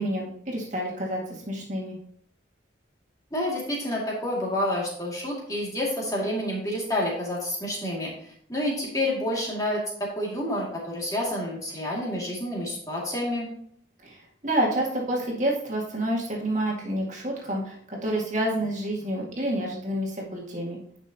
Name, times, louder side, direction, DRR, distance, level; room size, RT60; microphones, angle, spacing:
voice 1, 0.0-1.9 14.0-20.8, right 1 dB, 40° right, -2 dB, 2.0 m, -28 dB
voice 2, 3.3-13.5, left 1 dB, 20° left, -4 dB, 2.4 m, -29 dB
10.5 x 6.2 x 2.9 m, 0.64 s
head